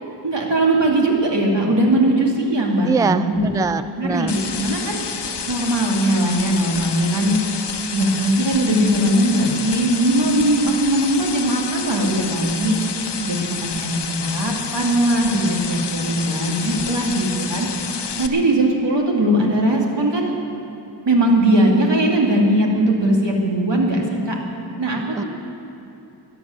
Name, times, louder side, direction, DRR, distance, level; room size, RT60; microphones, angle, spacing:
voice 1, 0.2-3.5 4.0-5.0 5.5-7.4 7.9-12.8 13.1-17.7 18.2-20.3 21.1-24.4 24.8-25.2, right 1 dB, 85° right, -1 dB, 2.5 m, -19 dB
voice 2, 2.9-4.4 25.1-25.2, right 4 dB, 10° right, 13 dB, 0.4 m, -22 dB
sound 1, 4.3-18.3, left 6 dB, 75° left, 0.9 m, -29 dB
13.5 x 10.5 x 9.0 m, 2.9 s
wide cardioid pair, 65°, 42 cm